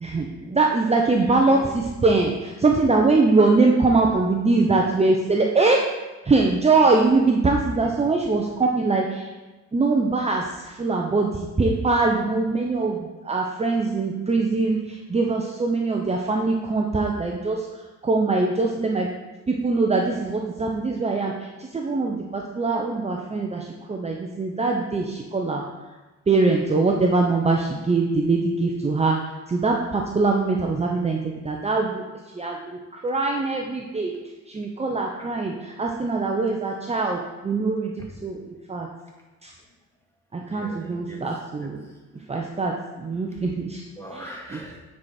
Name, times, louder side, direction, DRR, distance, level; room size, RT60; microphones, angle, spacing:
voice 1, 0.0-5.8 6.3-9.2 9.7-13.0 13.2-14.8 15.1-17.6 18.0-19.1 19.5-21.3 21.7-25.6 26.3-29.2 29.5-32.0 32.4-34.1 34.5-37.2 37.4-37.9 38.2-38.4 38.7-38.9 39.4-39.5 40.3-41.8 42.3-42.7 43.0-43.8, right 3 dB, 20° right, 1 dB, 0.8 m, -22 dB
voice 2, 1.0-1.7 7.8-8.1 40.5-41.9 44.0-44.8, equal, 10° left, -2 dB, 2.2 m, -40 dB
9.4 x 4.8 x 4.3 m, 1.2 s
cardioid pair, 90°, 30 cm